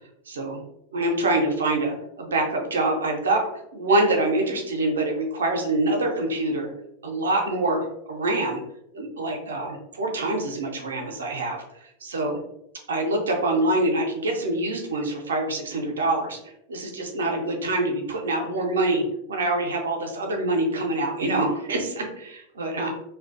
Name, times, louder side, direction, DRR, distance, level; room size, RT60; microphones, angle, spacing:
voice 1, 0.3-0.6 0.9-3.4 3.7-6.7 7.0-8.6 8.9-12.4 12.9-22.9, right 2 dB, 65° right, 2 dB, 0.4 m, -25 dB
2.4 x 2.2 x 2.5 m, 0.81 s
figure-of-eight pair, 90°, 0 cm